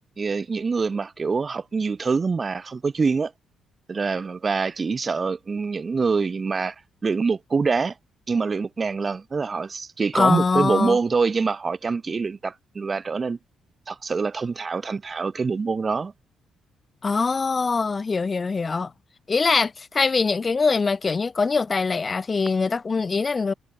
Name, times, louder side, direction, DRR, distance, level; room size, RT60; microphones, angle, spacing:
voice 1, 0.2-3.3 3.9-6.7 7.0-7.9 8.3-13.4 13.9-16.1, right 4 dB, 35° right, 7.8 m, -25 dB
voice 2, 10.1-11.0 17.0-18.9 19.3-23.5, left 4 dB, 30° left, 6.6 m, -23 dB
cardioid pair, 90°, 0 cm